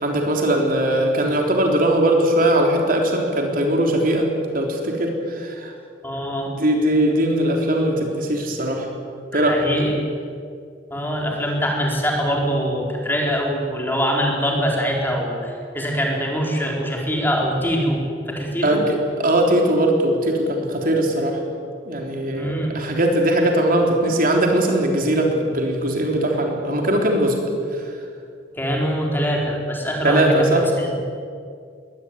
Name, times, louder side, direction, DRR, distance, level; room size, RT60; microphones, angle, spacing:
voice 1, 0.0-4.3 4.5-5.7 6.4-8.9 9.3-9.6 18.6-21.4 21.9-27.4 27.7-27.8 30.0-30.7, right 1 dB, 55° right, 1 dB, 3.7 m, -20 dB
voice 2, 6.0-6.5 9.3-10.1 10.9-18.0 18.3-18.8 22.3-22.7 28.6-30.5 30.8-31.0, equal, 10° left, -1 dB, 4.6 m, -23 dB
21.5 x 18.5 x 9.5 m, 2.3 s
head